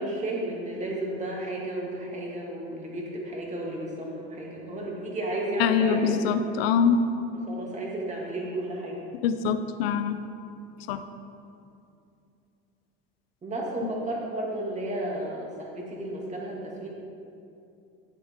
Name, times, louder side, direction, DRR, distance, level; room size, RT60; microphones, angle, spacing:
voice 1, 0.0-6.2 7.5-9.0 13.4-16.9, right 1 dB, 25° right, -3 dB, 2.5 m, -33 dB
voice 2, 5.6-7.1 9.2-10.2 10.9-11.0 13.8-13.9, left 6 dB, 85° left, 10 dB, 0.7 m, -24 dB
12.0 x 8.0 x 3.8 m, 2.6 s
supercardioid pair, 105°, 29 cm